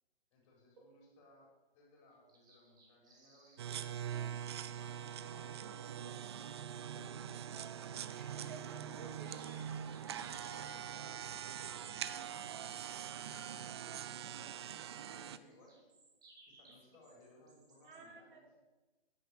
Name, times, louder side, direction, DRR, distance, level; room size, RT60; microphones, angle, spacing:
voice 1, 0.3-4.1 4.8-7.5 9.5-12.6 13.2-15.8 16.5-18.6, left 1 dB, 30° left, -1 dB, 5.1 m, -64 dB
sound 1, 2.1-4.5 8.3-10.7 15.3-18.0, right 2 dB, 10° right, 2.2 m, -64 dB
sound 2, 3.6-15.4, right 9 dB, 25° right, 0.4 m, -43 dB
voice 2, 8.1-9.5 17.8-18.4, right 4 dB, 55° right, 1 dB, 3.1 m, -54 dB
10.0 x 9.7 x 7.7 m, 1.2 s
hypercardioid pair, 140°, 31 cm